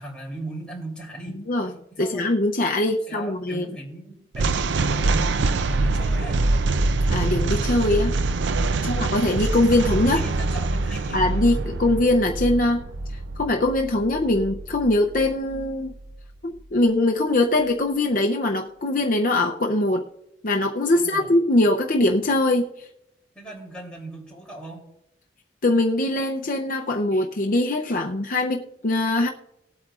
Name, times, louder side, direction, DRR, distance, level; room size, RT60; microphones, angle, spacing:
voice 1, 0.0-1.4 2.0-2.3 3.1-6.4 8.7-9.0 10.1-11.2 20.9-21.3 23.3-24.9, right 2 dB, 5° left, -2 dB, 3.1 m, -38 dB
voice 2, 2.0-3.8 7.1-8.1 8.9-10.2 11.1-12.8 13.4-15.9 16.4-20.1 20.4-22.7 25.6-29.3, left 2 dB, 50° left, 2 dB, 0.7 m, -22 dB
sound 1, 4.3-15.6, right 3 dB, 80° right, 0.5 m, -24 dB
19.5 x 8.5 x 2.5 m, 0.82 s
head